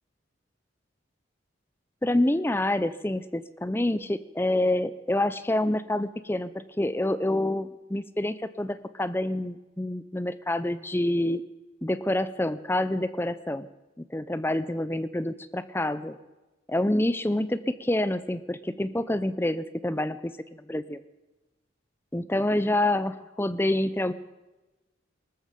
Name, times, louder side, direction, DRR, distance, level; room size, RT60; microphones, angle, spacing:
voice 1, 2.0-11.4 11.8-13.7 14.1-16.2 16.7-21.0 22.1-24.1, left 1 dB, 10° left, 14 dB, 0.6 m, -27 dB
19.5 x 14.0 x 5.2 m, 1.1 s
head